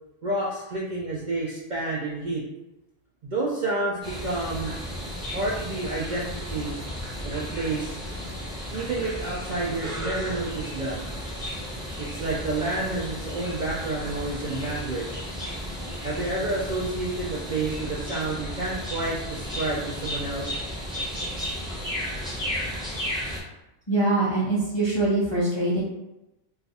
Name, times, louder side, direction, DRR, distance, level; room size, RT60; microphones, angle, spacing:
voice 1, 0.2-2.4 3.3-4.8 5.3-6.7 7.2-8.0 8.7-11.0 12.0-15.3 16.0-20.6, right 2 dB, 70° right, -5 dB, 0.4 m, -29 dB
sound 1, 4.0-23.4, equal, 5° right, 0.8 m, -34 dB
voice 2, 23.9-25.8, right 2 dB, 40° left, -7 dB, 0.3 m, -23 dB
2.4 x 2.3 x 4.0 m, 0.94 s
omnidirectional pair, 1.4 m